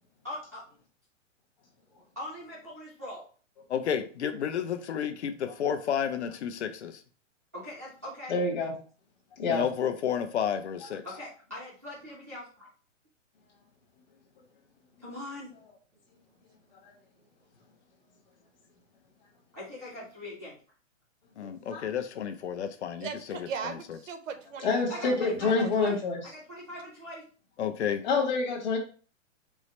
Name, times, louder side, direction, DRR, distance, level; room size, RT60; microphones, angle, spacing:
voice 1, 0.2-0.6 2.2-3.2 7.5-8.3 11.0-12.7 15.0-15.5 19.5-20.6 24.9-25.9 26.2-27.2, left 1 dB, 15° right, -9 dB, 0.4 m, -41 dB
voice 2, 3.7-7.0 9.5-11.0 21.4-23.5 27.6-28.0, left 8 dB, 60° left, 8 dB, 0.6 m, -31 dB
voice 3, 8.3-8.7 9.4-9.6 21.7-21.9 24.6-26.2 28.0-28.8, left 4 dB, 35° left, 0 dB, 1.2 m, -27 dB
voice 4, 23.0-25.2 25.6-25.7, right 6 dB, 75° right, 9 dB, 0.8 m, -38 dB
4.8 x 2.0 x 4.1 m, 0.39 s
hypercardioid pair, 170°, 38 cm